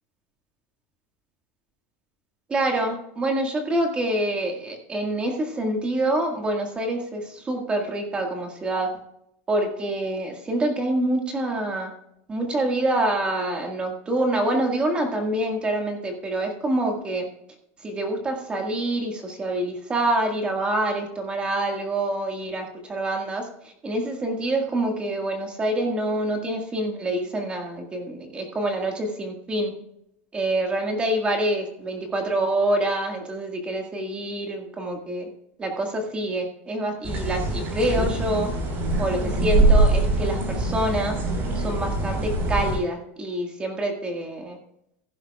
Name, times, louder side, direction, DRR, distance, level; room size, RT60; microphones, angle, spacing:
voice 1, 2.5-8.9 9.5-11.9 12.3-17.2 17.8-23.5 23.8-29.7 30.3-35.3 35.6-38.5 39.0-41.2 41.6-44.6, right 1 dB, 15° right, 3 dB, 1.8 m, -26 dB
sound 1, 37.0-42.8, right 2 dB, 30° right, 4.3 m, -23 dB
16.0 x 10.5 x 2.4 m, 0.77 s
supercardioid pair, 165°, 7 cm